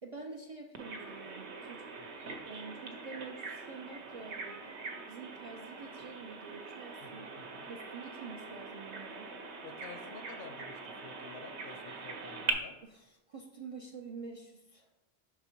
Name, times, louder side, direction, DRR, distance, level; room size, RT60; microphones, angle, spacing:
voice 1, 0.0-1.9 2.4-4.6 5.1-7.3 7.7-9.3 12.8-14.9, right 4 dB, 50° right, 1 dB, 0.4 m, -47 dB
Bird vocalization bird call bird song, 0.7-12.5, right 4 dB, 75° right, 1.0 m, -42 dB
voice 2, 7.0-7.7 9.6-12.8, left 6 dB, 60° left, 6 dB, 0.7 m, -51 dB
5.7 x 4.0 x 4.4 m, 1.1 s
omnidirectional pair, 1.2 m